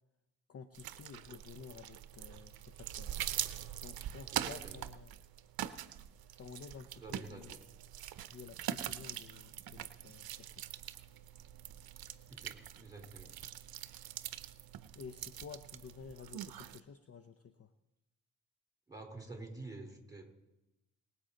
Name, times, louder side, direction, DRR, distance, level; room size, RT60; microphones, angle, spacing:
voice 1, 0.5-3.2 3.8-5.2 6.3-7.6 8.3-10.6 14.9-17.7, left 6 dB, 30° left, 11 dB, 0.8 m, -52 dB
sound 1, 0.7-16.8, right 11 dB, 55° right, 0.8 m, -43 dB
voice 2, 4.3-4.8 7.0-7.4 12.3-13.3 18.9-20.2, right 2 dB, 10° right, 3 dB, 3.8 m, -49 dB
23.0 x 8.1 x 3.9 m, 0.94 s
hypercardioid pair, 40°, 44 cm